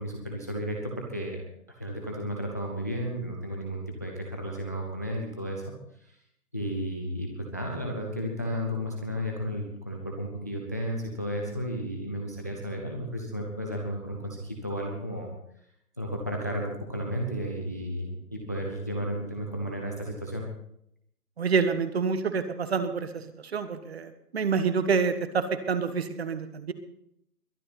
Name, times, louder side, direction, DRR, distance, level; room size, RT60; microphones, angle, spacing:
voice 1, 0.0-1.4 1.8-5.6 6.0-6.2 6.5-15.3 16.0-20.5, equal, 10° left, 1 dB, 0.6 m, -33 dB
voice 2, 21.4-26.7, right 5 dB, 40° right, 11 dB, 1.4 m, -27 dB
22.0 x 11.0 x 4.1 m, 0.74 s
figure-of-eight pair, 155°, 47 cm